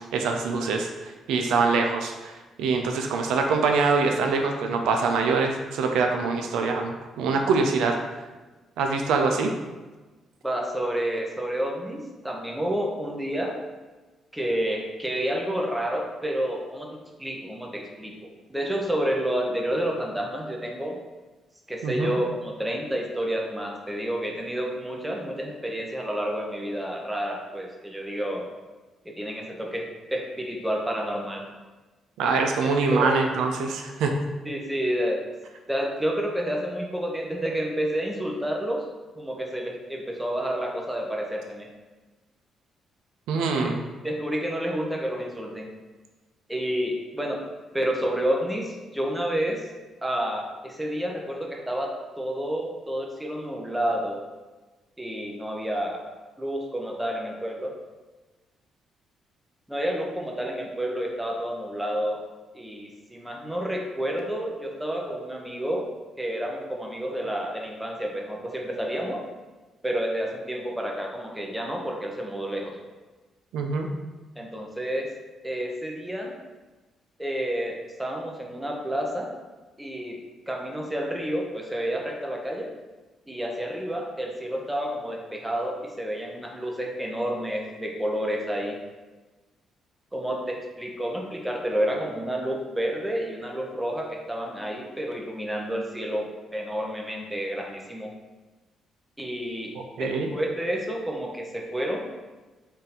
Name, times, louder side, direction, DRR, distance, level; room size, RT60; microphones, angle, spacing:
voice 1, 0.0-8.0 8.8-9.5 21.8-22.1 32.2-34.2 43.3-43.8 73.5-73.9 99.8-100.3, right 4 dB, 85° right, 3 dB, 0.5 m, -24 dB
voice 2, 10.4-13.6 14.3-21.0 21.7-28.4 29.0-31.4 32.6-33.2 34.5-35.2 35.7-38.9 39.2-41.7 43.5-43.7 44.0-45.7 46.5-47.4 47.7-49.7 50.0-54.2 55.0-56.1 56.4-57.7 59.7-62.2 62.5-65.9 66.2-69.2 69.8-72.8 74.4-75.1 75.4-76.3 77.2-79.3 79.8-80.2 80.5-82.7 83.3-88.8 90.1-98.1 99.2-99.7 100.0-102.0, equal, 5° right, 0 dB, 0.8 m, -30 dB
3.7 x 2.7 x 4.1 m, 1.2 s
cardioid pair, 90°, 0 cm